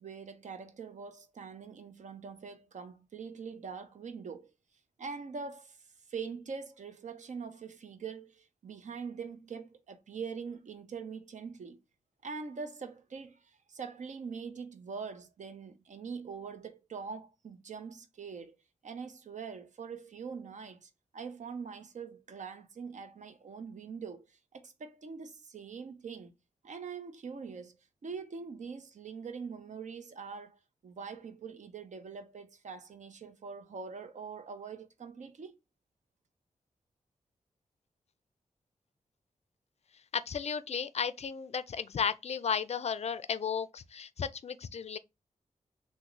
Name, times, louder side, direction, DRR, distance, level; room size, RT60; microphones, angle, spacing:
voice 1, 0.0-4.5 5.0-5.8 6.1-11.8 12.2-18.6 18.8-26.3 26.6-27.8 28.0-35.5, right 5 dB, 65° right, 0.6 m, -43 dB
voice 2, 40.1-45.0, left 7 dB, 55° left, 0.4 m, -34 dB
3.5 x 2.1 x 3.1 m
cardioid pair, 50°, 13 cm